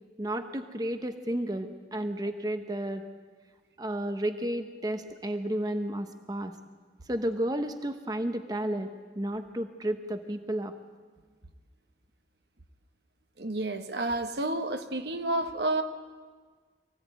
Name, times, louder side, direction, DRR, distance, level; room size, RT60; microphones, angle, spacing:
voice 1, 0.2-3.0 3.8-6.6 7.1-8.9 9.2-10.7, right 1 dB, 20° right, 7 dB, 0.9 m, -32 dB
voice 2, 13.4-15.8, right 2 dB, 65° right, 7 dB, 1.3 m, -30 dB
23.5 x 16.0 x 9.2 m, 1.5 s
head